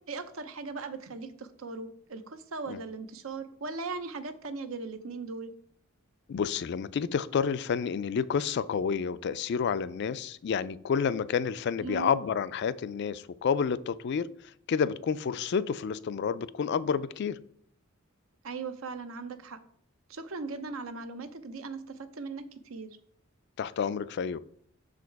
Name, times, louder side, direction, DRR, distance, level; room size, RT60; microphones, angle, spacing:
voice 1, 0.0-5.5 11.8-12.1 18.4-19.6 20.1-23.0, right 4 dB, 80° right, 0.7 m, -39 dB
voice 2, 6.3-14.3 14.7-17.4 23.6-24.4, left 6 dB, 55° left, 0.3 m, -29 dB
6.4 x 5.0 x 4.6 m
head